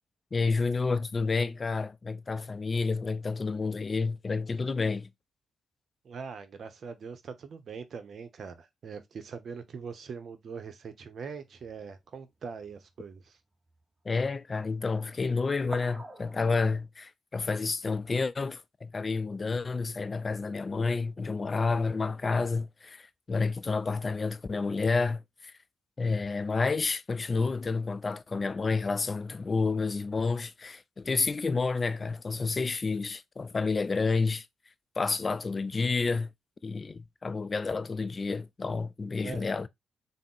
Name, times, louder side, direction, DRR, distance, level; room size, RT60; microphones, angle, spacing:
voice 1, 0.3-5.1 14.1-25.5 26.0-34.5 35.0-36.3 36.6-39.7, left 4 dB, 40° left, 0.4 m, -30 dB
voice 2, 6.0-13.4 39.2-39.5, right 5 dB, 60° right, 0.6 m, -42 dB
sound 1, 11.5-12.0 12.6-12.8 13.7-13.8 15.5-16.9, right 1 dB, 20° right, 0.9 m, -46 dB
3.5 x 2.0 x 3.7 m
hypercardioid pair, 45°, 0 cm